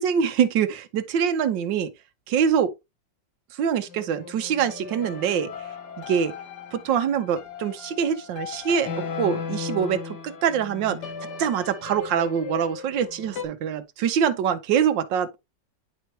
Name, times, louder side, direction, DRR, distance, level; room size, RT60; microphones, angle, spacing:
voice 1, 0.0-1.9 2.3-2.7 3.6-5.5 6.0-6.3 6.7-11.0 11.4-15.4, right 8 dB, 80° right, 1.5 m, -24 dB
sound 1, 3.9-13.4, left 6 dB, 70° left, 1.7 m, -36 dB
10.0 x 4.6 x 2.7 m
omnidirectional pair, 2.0 m